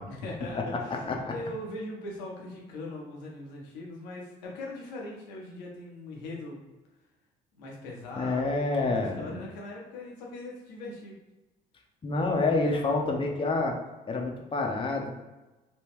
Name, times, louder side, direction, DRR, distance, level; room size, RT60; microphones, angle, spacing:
voice 1, 0.1-6.7 7.5-11.2 12.6-13.5, left 1 dB, 85° left, -2 dB, 0.8 m, -41 dB
voice 2, 8.1-9.4 12.0-13.8 14.1-15.1, left 3 dB, 25° left, 1 dB, 0.6 m, -28 dB
3.0 x 2.2 x 3.5 m, 1.1 s
hypercardioid pair, 55°, 21 cm